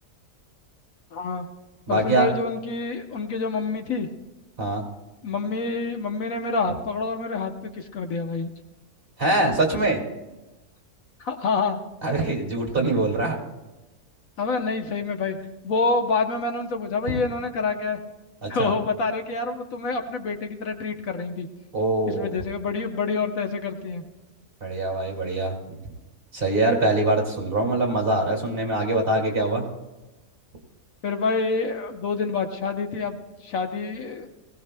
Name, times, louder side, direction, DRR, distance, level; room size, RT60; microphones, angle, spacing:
voice 1, 1.1-1.4 1.9-4.1 5.2-8.5 11.2-11.8 14.4-15.4 15.6-18.0 18.5-21.5 22.1-24.0 31.0-34.3, left 4 dB, 65° left, 5 dB, 1.3 m, -27 dB
voice 2, 1.9-2.3 4.6-4.8 9.2-10.0 12.0-13.4 17.1-17.2 18.4-18.7 21.7-22.3 24.6-25.5 26.3-29.7, right 2 dB, 35° right, 0 dB, 2.4 m, -23 dB
20.5 x 16.5 x 2.2 m, 1.1 s
omnidirectional pair, 1.6 m